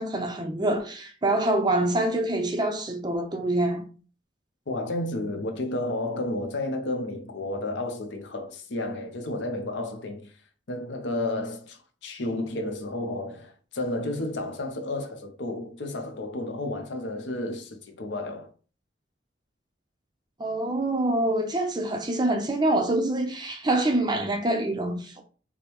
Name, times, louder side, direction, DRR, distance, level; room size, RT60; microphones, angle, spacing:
voice 1, 0.0-3.9 20.4-25.2, right 1 dB, 20° right, 0.5 m, -25 dB
voice 2, 4.7-10.3 10.7-18.5, left 2 dB, 70° left, 0.7 m, -32 dB
5.1 x 2.0 x 3.0 m
head